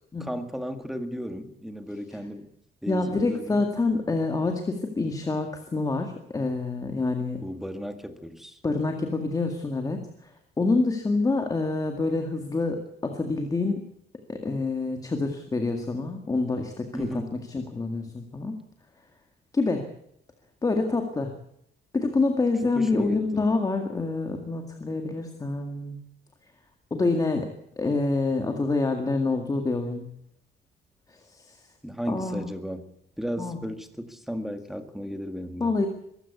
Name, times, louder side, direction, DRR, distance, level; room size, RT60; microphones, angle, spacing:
voice 1, 0.2-2.5 2.8-3.7 7.4-8.6 16.9-17.4 22.7-23.4 31.8-32.9 33.2-35.7, equal, ahead, 7 dB, 1.9 m, -35 dB
voice 2, 2.9-7.4 8.6-10.0 10.6-13.8 14.3-17.1 17.5-18.6 19.5-19.9 20.6-21.3 21.9-26.0 26.9-30.1 31.3-31.6 32.1-32.5 33.4-33.6 35.6-35.9, left 3 dB, 20° left, 4 dB, 2.0 m, -27 dB
23.5 x 15.0 x 8.4 m, 0.75 s
cardioid pair, 170°, 19 cm